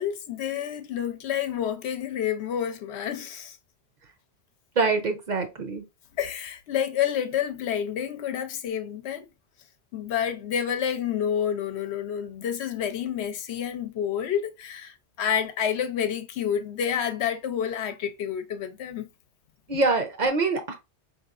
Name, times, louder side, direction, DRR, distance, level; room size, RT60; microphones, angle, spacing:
voice 1, 0.0-3.6 6.2-9.3 9.9-19.1, left 9 dB, 85° left, 0.9 m, -29 dB
voice 2, 4.8-5.8 19.7-20.7, right 3 dB, 50° right, 0.7 m, -24 dB
4.7 x 2.9 x 2.4 m
omnidirectional pair, 1.1 m